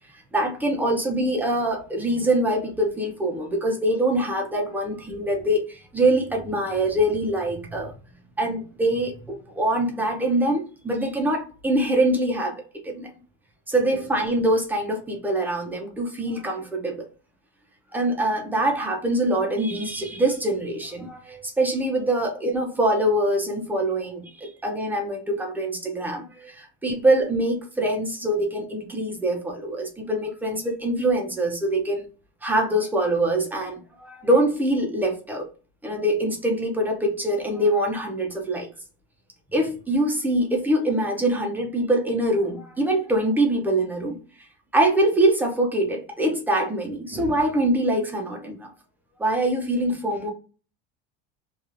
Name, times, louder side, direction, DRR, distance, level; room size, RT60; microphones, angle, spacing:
voice 1, 0.3-7.9 8.4-12.6 12.8-13.1 13.7-17.0 17.9-32.0 32.4-35.5 35.8-38.7 39.5-44.2 44.7-48.7 49.2-50.3, right 1 dB, 5° right, 0.5 m, -24 dB
3.1 x 2.3 x 2.5 m
supercardioid pair, 150°, 31 cm